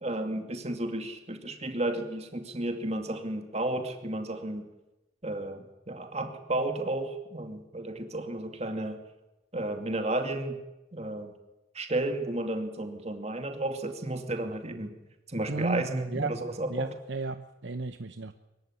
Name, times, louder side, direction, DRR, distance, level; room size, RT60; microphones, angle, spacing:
voice 1, 0.0-4.7 5.2-9.0 9.5-10.6 10.9-11.3 11.7-14.9 15.3-16.9, right 1 dB, 30° right, 6 dB, 2.4 m, -32 dB
voice 2, 15.5-16.4 16.7-18.3, right 3 dB, 60° right, 8 dB, 0.9 m, -34 dB
24.0 x 15.0 x 10.0 m, 1.0 s
head